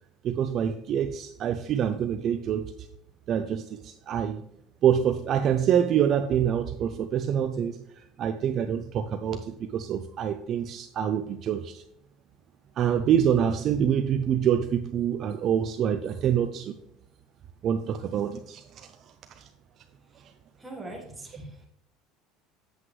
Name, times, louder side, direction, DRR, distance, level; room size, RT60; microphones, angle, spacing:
voice 1, 0.2-2.7 3.3-4.4 4.8-7.8 8.2-11.8 12.8-16.8 17.6-18.9 19.4-19.5, right 9 dB, 35° right, 0.4 m, -26 dB
voice 2, 20.6-21.7, right 2 dB, 5° right, 1.5 m, -41 dB
8.0 x 7.5 x 3.2 m
cardioid pair, 160°, 0 cm